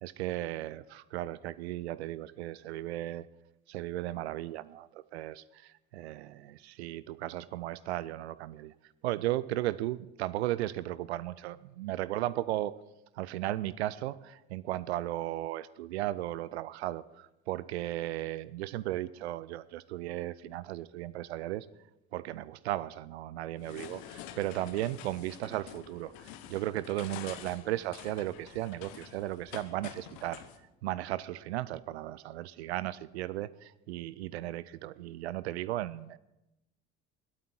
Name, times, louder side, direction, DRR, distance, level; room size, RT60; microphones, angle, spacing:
voice 1, 0.0-3.3 3.7-8.7 9.0-12.8 13.1-21.7 22.1-30.4 30.8-36.2, right 15 dB, 70° right, 18 dB, 0.5 m, -36 dB
sound 1, 23.6-30.6, left 11 dB, 60° left, 1.1 m, -48 dB
21.5 x 8.9 x 4.4 m, 0.92 s
figure-of-eight pair, 60°, 34 cm